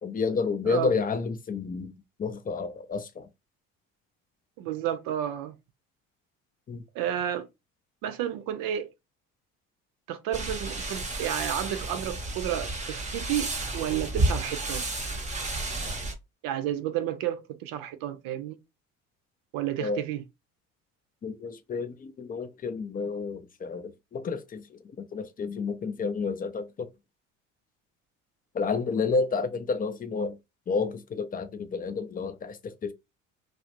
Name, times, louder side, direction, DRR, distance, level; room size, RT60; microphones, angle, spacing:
voice 1, 0.0-1.9 2.2-3.3 6.7-6.8 19.8-20.0 21.2-26.9 28.5-30.4 30.7-32.9, left 4 dB, 25° left, 0.5 m, -30 dB
voice 2, 4.6-5.6 6.9-7.5 8.0-8.9 10.1-14.8 16.4-18.6 19.5-20.2, right 11 dB, 60° right, 0.6 m, -31 dB
sound 1, 10.3-16.1, right 2 dB, 20° right, 0.8 m, -31 dB
2.4 x 2.0 x 2.8 m
hypercardioid pair, 65°, 38 cm